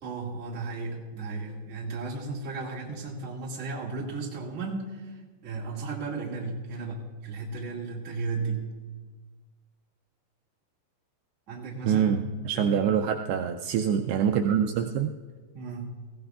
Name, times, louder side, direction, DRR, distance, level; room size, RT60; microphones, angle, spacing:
voice 1, 0.0-5.1 5.4-8.7 11.5-12.0 12.6-12.9 15.5-16.0, right 3 dB, 30° right, -4 dB, 1.5 m, -35 dB
voice 2, 11.8-15.1, right 8 dB, 80° right, 5 dB, 2.3 m, -25 dB
18.5 x 16.0 x 2.4 m, 1.4 s
omnidirectional pair, 4.8 m